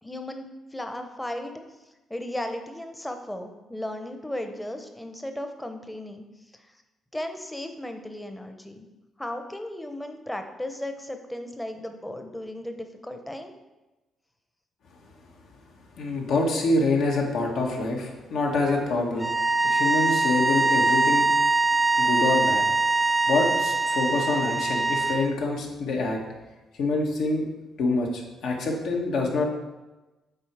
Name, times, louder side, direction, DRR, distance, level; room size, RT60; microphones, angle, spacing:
voice 1, 0.0-1.5 2.1-6.3 6.5-6.7 7.1-8.8 9.2-13.5, left 1 dB, 10° left, 6 dB, 0.8 m, -35 dB
voice 2, 16.0-19.3 19.6-21.3 22.0-22.6 23.2-26.2 26.8-27.5 27.8-29.4, left 3 dB, 75° left, 0 dB, 1.5 m, -26 dB
sound 1, 19.2-25.3, right 3 dB, 10° right, 0.4 m, -23 dB
7.5 x 4.0 x 4.7 m, 1.1 s
cardioid pair, 90°, 0 cm